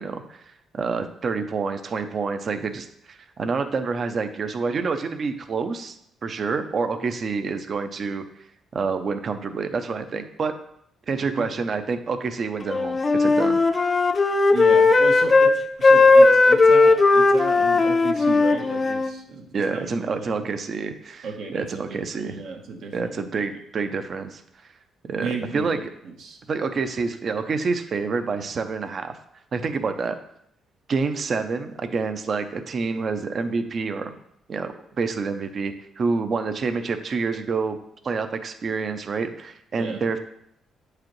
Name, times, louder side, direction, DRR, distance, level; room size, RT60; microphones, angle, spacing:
voice 1, 0.0-6.0 6.2-8.2 8.7-10.5 11.1-13.6 19.5-22.4 22.9-24.4 25.1-25.8 26.5-29.2 29.5-30.2 30.9-34.2 34.5-37.8 38.0-40.2, right 4 dB, 50° right, 8 dB, 0.5 m, -27 dB
Wind instrument woodwind instrument, 12.7-15.6 15.8-19.1, left 3 dB, 30° left, 0.5 m, -17 dB
voice 2, 14.5-20.5 21.2-23.2 25.2-26.4 39.8-40.0, right 4 dB, 80° right, 2 dB, 1.1 m, -35 dB
8.4 x 4.8 x 3.1 m, 0.73 s
cardioid pair, 90°, 0 cm